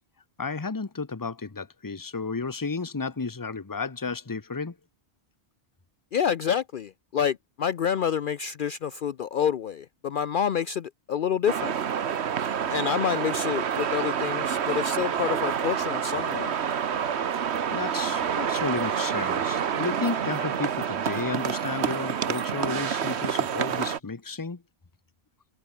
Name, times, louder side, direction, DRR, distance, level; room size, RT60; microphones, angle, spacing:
voice 1, 0.4-4.7 17.7-24.6, left 4 dB, 20° left, 0.9 m, -32 dB
voice 2, 6.1-11.8 12.7-16.5, left 8 dB, 60° left, 0.7 m, -28 dB
sound 1, 11.5-24.0, right 8 dB, 80° right, 1.3 m, -28 dB
omnidirectional pair, 1.1 m